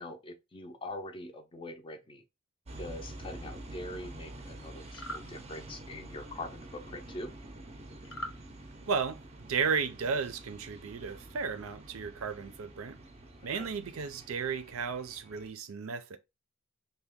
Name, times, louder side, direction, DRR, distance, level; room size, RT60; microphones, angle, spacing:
voice 1, 0.0-2.2 2.8-7.3 13.5-13.7, left 1 dB, 25° left, 0.5 m, -43 dB
sound 1, 2.7-15.5, right 1 dB, 30° right, 0.5 m, -48 dB
sound 2, 4.8-5.3 8.0-8.4, equal, 70° left, 0.8 m, -40 dB
voice 2, 8.9-13.0 13.4-16.2, right 5 dB, 80° right, 0.5 m, -34 dB
2.8 x 2.2 x 3.5 m
head